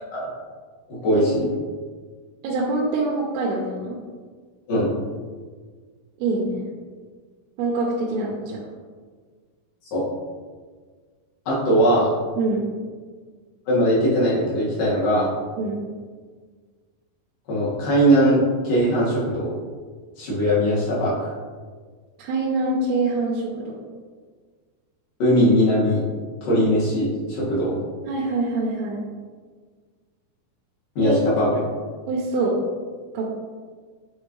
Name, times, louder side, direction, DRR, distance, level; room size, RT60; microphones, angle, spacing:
voice 1, 0.9-1.5 4.7-4.9 9.9-10.1 11.5-12.1 13.7-15.3 17.5-19.5 20.2-21.3 25.2-26.0 26.4-27.8 31.0-31.5, equal, 60° left, -7 dB, 3.4 m, -20 dB
voice 2, 2.4-4.0 6.2-6.7 7.6-8.6 12.4-12.7 15.6-15.8 22.2-23.8 28.1-29.0 31.0-31.4 32.1-32.6 33.1-33.3, right 2 dB, 85° right, -4 dB, 2.8 m, -25 dB
8.5 x 4.4 x 3.1 m, 1.5 s
omnidirectional pair, 4.5 m